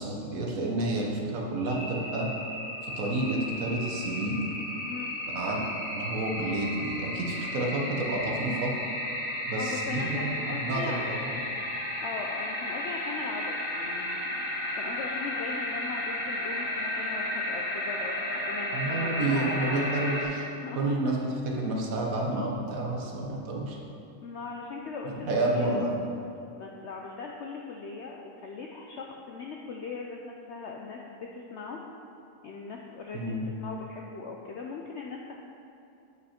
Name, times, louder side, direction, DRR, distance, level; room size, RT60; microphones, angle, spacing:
voice 1, 0.0-2.3 2.8-4.4 5.3-5.6 5.9-8.7 9.5-11.3 18.7-20.5 20.7-21.2 21.6-23.8 25.2-26.0 33.1-33.5, right 2 dB, 60° right, -1 dB, 1.3 m, -30 dB
sound 1, 1.7-20.2, left 1 dB, 30° left, 1.0 m, -33 dB
voice 2, 4.8-5.2 9.6-11.5 12.0-19.8 20.6-21.1 24.2-25.8 26.6-31.8 32.4-35.4, left 4 dB, 70° left, 0 dB, 0.6 m, -39 dB
8.1 x 5.2 x 4.3 m, 2.7 s
omnidirectional pair, 1.7 m